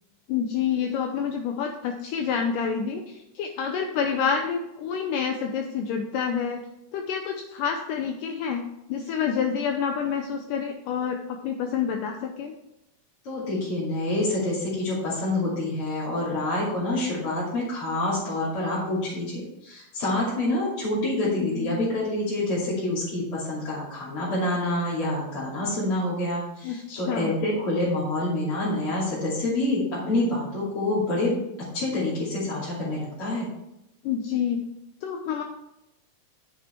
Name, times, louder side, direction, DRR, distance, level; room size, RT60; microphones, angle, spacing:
voice 1, 0.3-6.6 6.9-8.6 8.9-12.6 21.4-21.8 26.6-27.3 34.0-34.6 35.0-35.4, left 7 dB, 75° left, 3 dB, 2.2 m, -28 dB
voice 2, 13.2-31.4 31.7-33.5, left 1 dB, 40° left, -9 dB, 3.4 m, -27 dB
9.7 x 7.4 x 4.5 m, 0.88 s
omnidirectional pair, 4.1 m